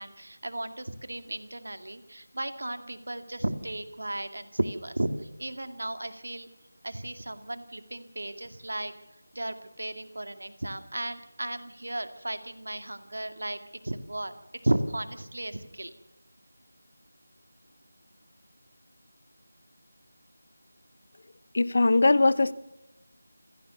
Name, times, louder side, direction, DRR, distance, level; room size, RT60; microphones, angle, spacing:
voice 1, 0.0-5.1 5.4-6.5 6.8-8.9 9.3-13.6 13.8-14.3 14.6-15.9, right 1 dB, 65° right, 9 dB, 2.1 m, -34 dB
voice 2, 21.5-22.5, left 3 dB, 45° left, 17 dB, 0.9 m, -21 dB
27.5 x 15.5 x 7.0 m, 0.97 s
figure-of-eight pair, 165°, 0 cm